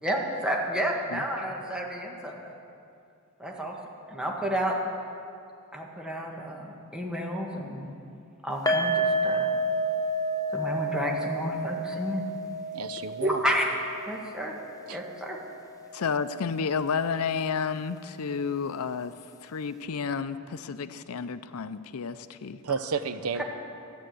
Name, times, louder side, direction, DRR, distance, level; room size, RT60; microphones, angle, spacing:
voice 1, 0.0-2.5 3.4-3.7 4.1-4.8 5.7-7.9 8.4-9.5 10.5-12.3 13.2-13.7 14.1-14.5 14.9-15.4, equal, 5° right, -1 dB, 1.6 m, -31 dB
sound 1, 8.7-15.9 16.1-16.3 16.7-16.8, right 1 dB, 15° left, 0.7 m, -30 dB
voice 2, 12.7-13.4 14.9-15.0 22.6-23.4, right 5 dB, 85° right, 11 dB, 0.7 m, -31 dB
voice 3, 15.9-19.1 19.4-22.6, left 6 dB, 90° left, 13 dB, 0.5 m, -31 dB
12.5 x 10.5 x 7.8 m, 2.5 s
head